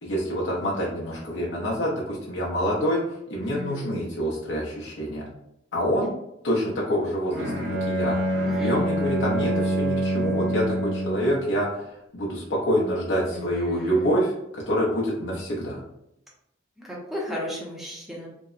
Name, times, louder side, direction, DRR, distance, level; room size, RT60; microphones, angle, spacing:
voice 1, 0.0-3.0 3.3-5.2 5.7-6.1 6.4-7.5 7.9-11.8 12.1-15.8, equal, 65° left, -4 dB, 0.5 m, -26 dB
voice 2, 3.4-3.9 8.4-8.8 13.3-14.2 16.8-18.3, left 1 dB, ahead, -4 dB, 0.6 m, -35 dB
Bowed string instrument, 7.3-11.4, right 1 dB, 75° right, 0.7 m, -26 dB
2.7 x 2.0 x 2.3 m, 0.80 s
head